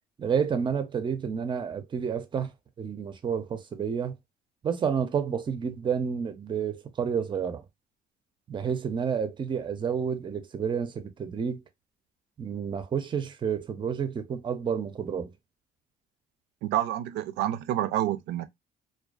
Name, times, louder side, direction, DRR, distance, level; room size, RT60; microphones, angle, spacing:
voice 1, 0.2-2.5 2.8-4.2 4.6-7.6 8.5-11.6 12.4-15.3, right 7 dB, 30° right, 0.5 m, -30 dB
voice 2, 16.6-18.5, right 12 dB, 85° right, 0.4 m, -28 dB
2.4 x 2.2 x 2.2 m
cardioid pair, 110°, 17 cm